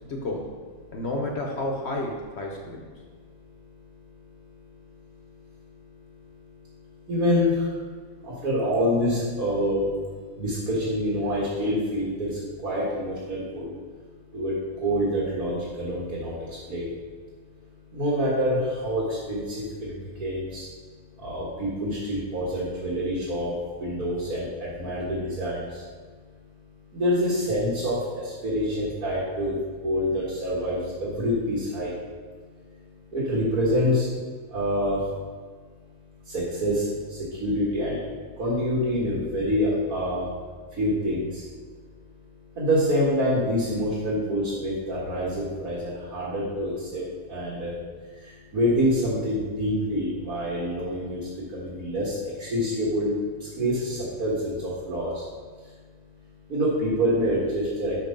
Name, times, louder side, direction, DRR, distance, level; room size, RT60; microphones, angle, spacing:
voice 1, 0.1-0.5 0.9-2.8, left 2 dB, 55° left, 1 dB, 1.0 m, -30 dB
voice 2, 7.1-7.5 8.4-9.9 10.4-12.3 12.6-13.7 14.3-14.5 14.8-16.3 16.7-16.9 17.9-19.0 19.3-19.4 19.8-19.9 20.2-20.6 21.2-23.5 23.8-24.5 24.8-25.6 26.9-27.9 28.4-29.6 29.8-31.9 33.1-34.1 34.5-35.0 36.3-36.8 37.4-38.1 38.4-40.3 40.8-41.2 42.6-47.0 47.3-47.7 48.5-51.2 51.5-53.1 53.6-55.1 56.5-58.0, equal, 85° right, -8 dB, 2.2 m, -26 dB
6.1 x 5.4 x 5.2 m, 1.5 s
omnidirectional pair, 1.5 m